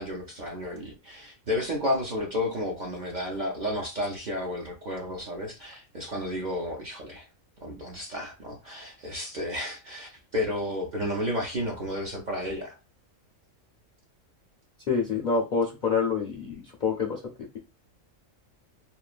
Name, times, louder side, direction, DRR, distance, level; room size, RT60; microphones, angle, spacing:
voice 1, 0.0-7.3 7.6-12.8, left 1 dB, 55° right, 0.5 m, -32 dB
voice 2, 14.9-17.6, left 5 dB, 65° left, 0.4 m, -27 dB
3.0 x 2.2 x 2.4 m
omnidirectional pair, 1.4 m